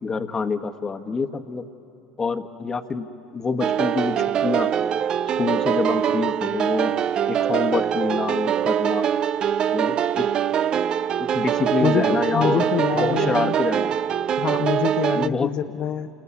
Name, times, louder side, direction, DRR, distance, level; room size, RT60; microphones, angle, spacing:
voice 1, 0.0-1.6 2.2-3.1 3.3-4.7 5.4-6.9 7.2-9.1 9.7-10.3 11.2-13.9 15.1-15.5, left 4 dB, 30° left, 7 dB, 1.3 m, -26 dB
sound 1, 3.6-15.3, right 9 dB, 45° right, 0.6 m, -23 dB
voice 2, 11.8-13.6 14.4-16.1, left 8 dB, 55° left, 4 dB, 1.0 m, -25 dB
27.5 x 21.0 x 9.8 m, 2.8 s
hypercardioid pair, 80°, 2 cm